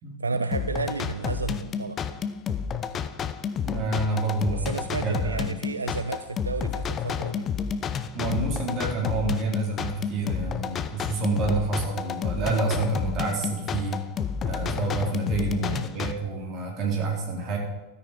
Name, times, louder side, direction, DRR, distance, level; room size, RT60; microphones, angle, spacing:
voice 1, 0.2-2.2 4.5-7.5 15.6-15.9, right 4 dB, 75° right, 12 dB, 0.5 m, -32 dB
sound 1, 0.5-16.1, left 7 dB, 25° left, 0.8 m, -30 dB
voice 2, 3.6-5.5 8.1-14.0 14.4-17.6, right 3 dB, 35° right, 0 dB, 4.2 m, -28 dB
14.5 x 13.0 x 4.9 m, 1.1 s
figure-of-eight pair, 90°, 0 cm